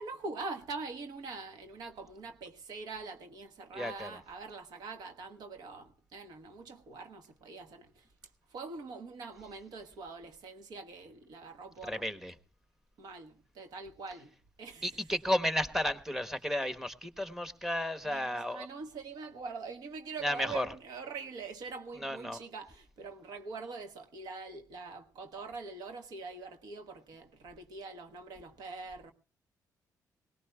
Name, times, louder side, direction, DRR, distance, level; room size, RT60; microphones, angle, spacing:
voice 1, 0.0-8.1 8.5-12.0 13.0-15.0 18.0-29.1, right 4 dB, 85° right, 1.3 m, -44 dB
voice 2, 3.7-4.1 11.9-12.3 14.8-18.7 20.2-20.6 22.0-22.4, left 1 dB, 5° right, 1.1 m, -33 dB
21.5 x 18.5 x 2.3 m
cardioid pair, 110°, 7 cm